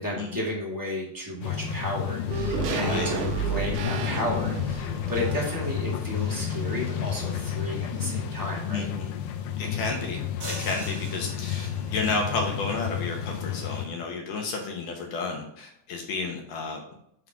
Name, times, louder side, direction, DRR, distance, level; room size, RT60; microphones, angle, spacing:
voice 1, 0.0-8.9, left 1 dB, 5° right, -6 dB, 1.8 m, -33 dB
sound 1, 1.4-13.9, left 8 dB, 85° left, 2.5 m, -31 dB
sound 2, 2.3-6.8 7.1-7.2, right 5 dB, 70° right, 2.3 m, -32 dB
voice 2, 8.7-9.1 9.6-10.2 10.6-16.8, left 3 dB, 70° left, 2 dB, 2.4 m, -31 dB
sound 3, 10.4-12.2, right 2 dB, 45° right, 1.1 m, -40 dB
7.6 x 3.8 x 4.7 m, 0.73 s
omnidirectional pair, 4.2 m